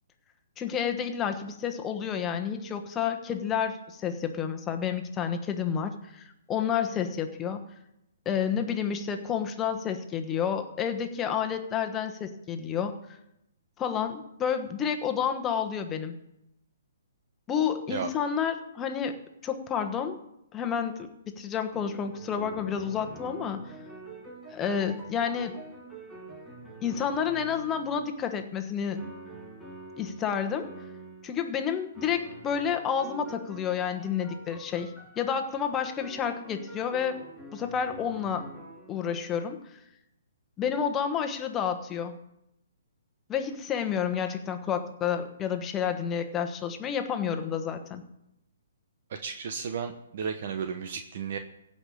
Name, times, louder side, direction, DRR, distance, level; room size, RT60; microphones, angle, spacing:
voice 1, 0.6-7.6 8.2-13.0 13.8-16.1 17.5-19.2 19.4-20.2 20.5-21.1 21.4-23.6 24.5-25.6 26.8-29.0 30.0-30.7 31.2-37.2 37.5-38.5 38.9-39.6 40.6-42.1 43.3-48.0, left 7 dB, 20° left, 6 dB, 1.2 m, -30 dB
sound 1, 21.7-28.2 28.9-30.3 30.6-31.3 31.9-39.2, right 1 dB, ahead, 5.2 m, -46 dB
voice 2, 49.1-51.4, right 6 dB, 55° right, 6 dB, 1.0 m, -34 dB
16.0 x 5.5 x 8.4 m, 0.84 s
hypercardioid pair, 140°, 0 cm